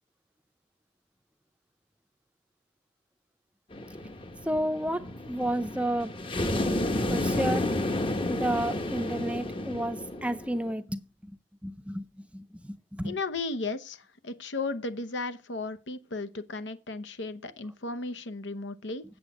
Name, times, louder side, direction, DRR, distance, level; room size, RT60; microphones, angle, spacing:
sound 1, 3.7-10.7, left 1 dB, 30° left, 0.9 m, -31 dB
voice 1, 4.5-6.2 7.1-7.7 8.3-11.3 11.6-12.1 12.3-13.2, right 1 dB, 5° right, 0.5 m, -31 dB
voice 2, 13.0-19.0, left 3 dB, 85° left, 0.9 m, -35 dB
8.2 x 7.8 x 4.9 m
head